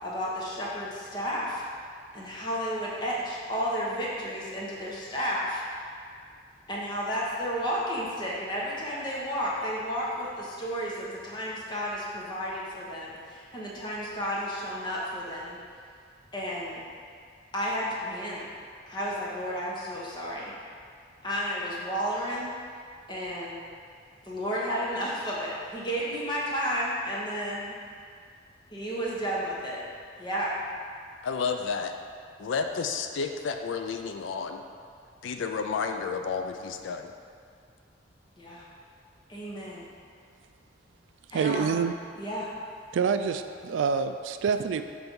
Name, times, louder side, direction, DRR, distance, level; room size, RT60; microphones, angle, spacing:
voice 1, 0.0-1.6 2.1-5.6 6.7-15.6 16.3-16.8 17.5-18.5 18.9-20.5 21.2-22.5 23.1-23.6 24.2-27.8 28.7-29.8 30.2-30.5 38.4-38.6 39.3-39.9 41.3-41.8 42.2-42.5, equal, 25° left, -5 dB, 1.0 m, -32 dB
voice 2, 31.2-31.9 32.4-34.6 35.2-37.1, left 5 dB, 80° left, 6 dB, 0.4 m, -31 dB
voice 3, 41.3-41.9 42.9-44.8, right 6 dB, 80° right, 8 dB, 0.3 m, -26 dB
6.1 x 3.4 x 5.3 m, 2.2 s
head